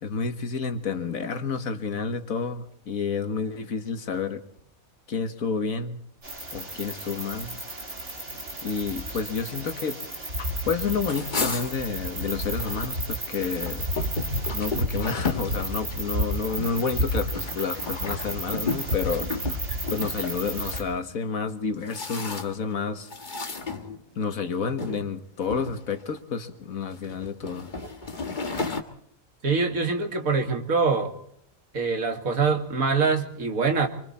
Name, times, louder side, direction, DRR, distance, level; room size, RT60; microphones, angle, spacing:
voice 1, 0.0-4.5 5.1-6.0 6.5-7.6 8.6-13.9 14.5-19.3 19.9-23.6 24.2-27.7, left 5 dB, 85° left, 8 dB, 1.9 m, -30 dB
sound 1, 6.2-20.8, equal, 60° right, 4.3 m, -32 dB
sound 2, 11.0-12.9 13.3-20.9 21.5-22.7 23.1-24.3 24.8-25.0 25.4-26.2 26.8-28.8, left 3 dB, 35° left, 1.6 m, -34 dB
voice 2, 29.4-31.1 31.7-33.9, right 4 dB, 85° right, 5 dB, 2.5 m, -24 dB
25.0 x 24.5 x 4.3 m, 0.67 s
omnidirectional pair, 1.4 m